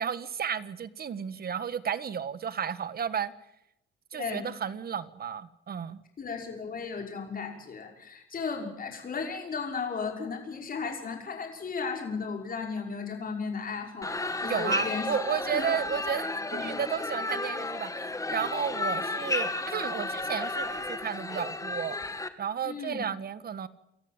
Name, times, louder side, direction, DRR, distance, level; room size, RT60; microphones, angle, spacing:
voice 1, 0.0-3.3 4.1-6.0 14.4-22.0 22.4-23.7, right 8 dB, 50° right, 15 dB, 1.6 m, -33 dB
voice 2, 4.1-4.4 6.2-14.1 14.4-15.1 15.5-15.6 16.5-16.8 22.6-23.0, left 5 dB, 45° left, 2 dB, 5.9 m, -35 dB
sound 1, 14.0-22.3, left 2 dB, 15° left, 2.0 m, -33 dB
28.0 x 14.0 x 8.9 m, 0.82 s
cardioid pair, 90°, 20 cm